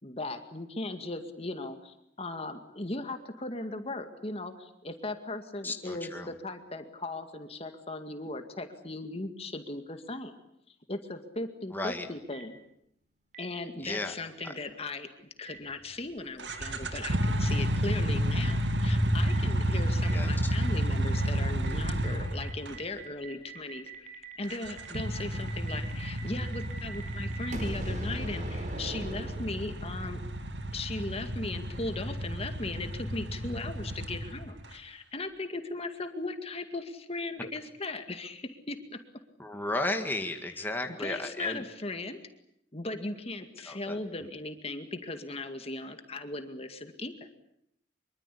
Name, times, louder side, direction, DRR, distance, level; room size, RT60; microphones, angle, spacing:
voice 1, 0.0-10.3 10.9-12.6 13.4-15.1 15.4-30.2 30.7-39.0 40.4-42.2 42.7-47.1, left 2 dB, 35° left, 7 dB, 2.1 m, -38 dB
voice 2, 5.6-6.3 11.7-12.1 13.8-14.1 20.1-20.5 39.4-41.6 43.7-44.0, left 2 dB, 10° left, 4 dB, 2.0 m, -34 dB
Boom, 12.3-12.4 13.3-13.4 14.4-14.5 15.5-15.6 16.5-16.6 17.4-17.5 18.4-18.5 19.3-19.4 20.0-20.1 20.6-20.7 21.1-21.2 21.6-21.7 22.0-22.1 22.4-30.0, right 1 dB, 45° right, 4.4 m, -41 dB
sound 1, 16.4-22.8 24.5-34.6, equal, 75° right, 2.4 m, -30 dB
25.0 x 24.0 x 8.5 m, 0.74 s
head